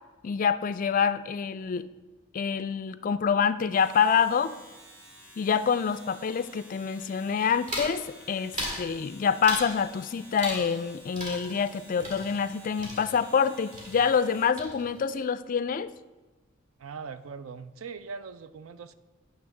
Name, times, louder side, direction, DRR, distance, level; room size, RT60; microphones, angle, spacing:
voice 1, 0.2-1.9 2.3-4.5 5.4-15.9, left 6 dB, 40° left, 14 dB, 0.3 m, -26 dB
Domestic sounds home sounds, 3.6-14.6, equal, 10° right, 2.1 m, -51 dB
sound 1, 7.7-8.0 8.5-8.9 9.4-9.8 10.4-10.9 11.2-13.5 13.7-14.3 14.6-15.1, equal, 35° right, 2.1 m, -37 dB
voice 2, 16.8-18.9, right 5 dB, 80° right, 13 dB, 0.4 m, -41 dB
9.3 x 3.4 x 6.4 m, 1.2 s
head